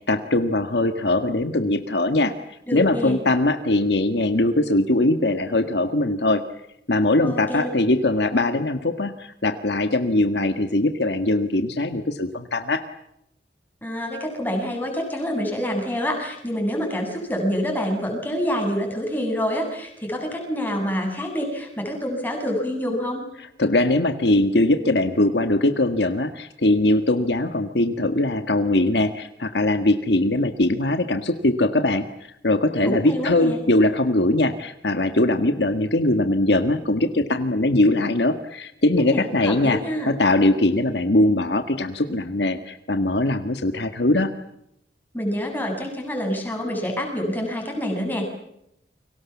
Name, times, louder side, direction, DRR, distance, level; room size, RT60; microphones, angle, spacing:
voice 1, 0.1-2.3 2.7-6.4 6.9-12.8 23.4-32.0 32.4-39.8 40.0-44.3, left 2 dB, 65° left, 8 dB, 1.7 m, -21 dB
voice 2, 2.7-3.2 7.2-7.7 13.8-23.2 32.8-33.6 39.1-40.1 45.1-48.3, equal, 10° left, 2 dB, 7.9 m, -27 dB
30.0 x 24.5 x 7.3 m, 0.78 s
head